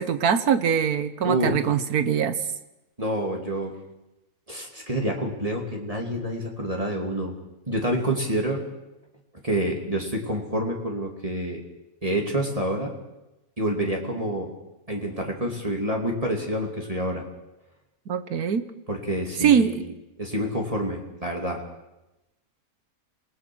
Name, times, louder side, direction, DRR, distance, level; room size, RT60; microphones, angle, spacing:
voice 1, 0.0-2.4 18.1-18.6 19.4-19.8, right 7 dB, 85° right, 12 dB, 1.7 m, -22 dB
voice 2, 1.2-1.6 3.0-3.7 4.5-7.3 7.7-8.6 9.4-11.6 12.0-12.9 13.6-14.5 14.9-17.2 18.9-19.8 20.2-21.6, right 1 dB, 25° right, 0 dB, 2.8 m, -27 dB
27.5 x 19.0 x 6.3 m, 0.97 s
omnidirectional pair, 1.6 m